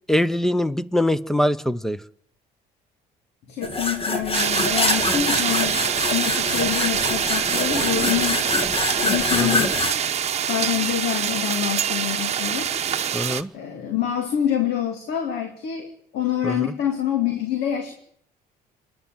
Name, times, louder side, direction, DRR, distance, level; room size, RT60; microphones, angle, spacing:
voice 1, 0.1-2.0 9.3-9.7 13.1-13.5 16.4-16.7, left 1 dB, ahead, 16 dB, 0.9 m, -23 dB
voice 2, 3.5-5.8 6.1-8.7 9.0-9.7 10.5-12.7 13.5-17.9, left 10 dB, 80° left, 5 dB, 2.6 m, -26 dB
sound 1, 3.6-9.9, left 2 dB, 35° left, 2.3 m, -25 dB
sound 2, 4.3-13.4, right 8 dB, 40° right, 1.0 m, -25 dB
26.0 x 11.0 x 9.2 m, 0.65 s
cardioid pair, 110°, 17 cm